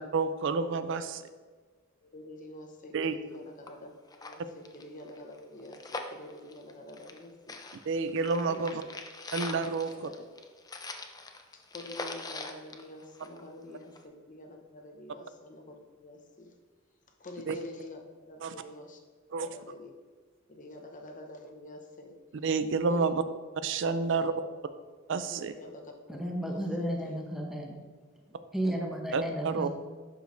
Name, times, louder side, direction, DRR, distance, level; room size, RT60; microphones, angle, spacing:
voice 1, 0.0-1.2 2.9-3.1 7.9-8.8 9.3-10.1 17.5-17.6 18.4-18.5 19.3-19.5 22.4-23.2 23.6-24.3 25.1-25.5 29.1-29.7, right 4 dB, 65° right, 11 dB, 0.4 m, -29 dB
voice 2, 2.0-7.6 8.5-8.7 9.8-10.3 11.7-16.5 17.2-19.0 19.3-19.9 20.5-22.2 22.9-23.1 24.0-24.5 25.2-27.2 29.4-29.7, left 1 dB, 40° left, 3 dB, 0.9 m, -47 dB
sound 1, 3.3-3.4 3.7-3.8 4.1-7.2 7.5-13.6 14.0-14.1, left 3 dB, 20° left, 0.5 m, -42 dB
voice 3, 26.1-27.8 28.3-29.7, equal, ahead, 0 dB, 0.9 m, -33 dB
11.5 x 5.0 x 2.6 m, 1.4 s
head